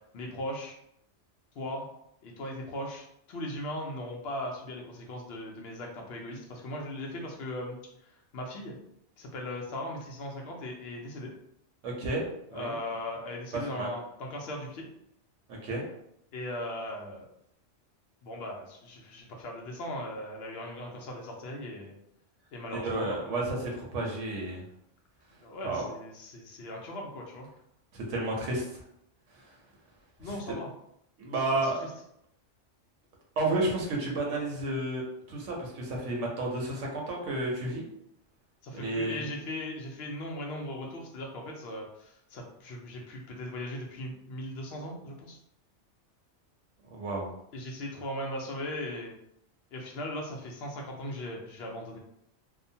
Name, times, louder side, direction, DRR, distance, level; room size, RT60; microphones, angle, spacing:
voice 1, 0.1-0.8 1.6-1.9 2.2-7.8 8.3-8.8 9.2-11.3 12.5-14.9 16.3-17.3 18.2-21.9 22.5-23.3 25.4-27.5 30.2-30.7 31.5-31.6 38.6-45.4 47.5-49.1 49.7-52.0, left 1 dB, 65° left, 0 dB, 0.9 m, -38 dB
voice 2, 11.8-12.2 12.5-12.7 13.5-13.9 15.5-15.8 22.7-24.6 25.6-25.9 27.9-28.8 29.3-29.5 30.2-30.6 31.2-31.8 33.4-37.9 38.7-39.2 46.9-47.3, right 2 dB, 90° right, -1 dB, 1.1 m, -32 dB
2.8 x 2.1 x 2.7 m, 0.75 s
omnidirectional pair, 1.2 m